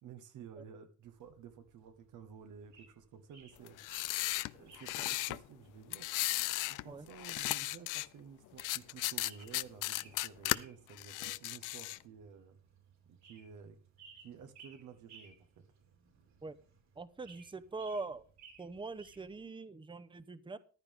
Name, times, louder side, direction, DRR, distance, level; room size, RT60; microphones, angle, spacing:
voice 1, 0.0-4.0 4.5-6.1 6.7-12.6 13.1-13.8 14.2-15.3, right 7 dB, 85° right, 7 dB, 1.6 m, -53 dB
sound 1, 1.0-19.5, right 5 dB, 65° right, 3.8 m, -61 dB
sound 2, 3.7-5.4 5.9-6.8 7.1-8.1 8.6-10.6 11.0-12.0, left 18 dB, 90° left, 0.5 m, -35 dB
voice 2, 17.0-18.2 18.6-20.6, right 3 dB, 15° right, 13 dB, 0.9 m, -43 dB
14.5 x 11.0 x 3.6 m, 0.39 s
cardioid pair, 90°, 30 cm